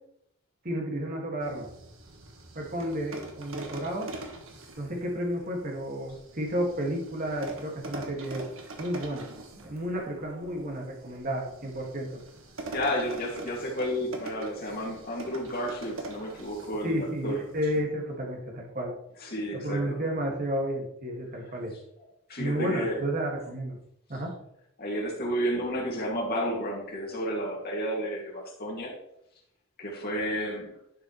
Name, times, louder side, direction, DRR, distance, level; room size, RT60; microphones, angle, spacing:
voice 1, 0.6-1.7 2.6-4.1 4.8-8.5 8.8-12.2 16.8-18.9 19.5-21.7 22.4-23.8 24.1-24.3, equal, 45° right, 0 dB, 2.1 m, -32 dB
sound 1, 1.4-17.8, right 2 dB, 85° right, 1.5 m, -44 dB
voice 2, 12.7-17.4 19.2-20.1 22.3-23.0 24.8-28.9 29.8-30.7, equal, 50° left, -2 dB, 2.5 m, -31 dB
11.0 x 5.9 x 3.3 m, 0.76 s
head